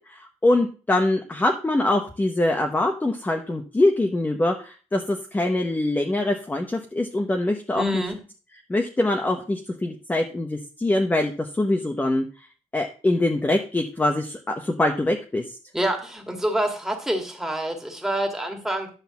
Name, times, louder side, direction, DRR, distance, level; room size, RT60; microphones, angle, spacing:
voice 1, 0.0-8.0 8.7-12.2 12.7-15.4, left 2 dB, 15° left, 3 dB, 0.8 m, -23 dB
voice 2, 7.8-8.2 15.7-18.9, right 1 dB, 5° right, 2 dB, 2.0 m, -26 dB
10.5 x 4.0 x 6.9 m, 0.37 s
wide cardioid pair, 170°, 13 cm